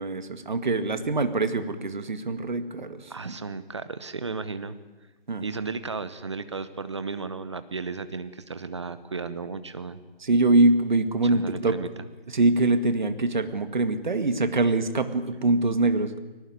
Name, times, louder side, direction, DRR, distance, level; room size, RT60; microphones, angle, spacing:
voice 1, 0.0-3.3 5.3-5.4 10.2-11.7 12.3-16.2, right 2 dB, 50° right, 10 dB, 2.0 m, -24 dB
voice 2, 3.1-4.8 5.4-10.0 11.3-11.9, right 4 dB, 30° right, 13 dB, 0.9 m, -34 dB
22.0 x 18.5 x 9.6 m, 1.2 s
figure-of-eight pair, 160°, 30 cm